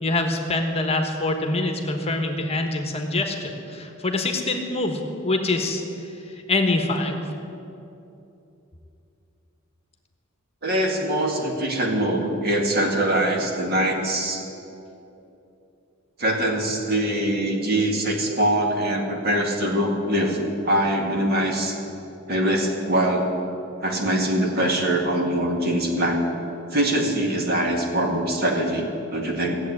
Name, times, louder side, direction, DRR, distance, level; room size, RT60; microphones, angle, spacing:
voice 1, 0.0-5.8 6.5-7.3, left 2 dB, 30° left, 4 dB, 1.3 m, -25 dB
voice 2, 10.6-14.4 16.2-20.4 20.6-21.8 22.3-23.2 23.8-26.2 26.7-29.6, right 1 dB, 50° right, 1 dB, 2.2 m, -23 dB
16.0 x 7.8 x 9.7 m, 2.8 s
head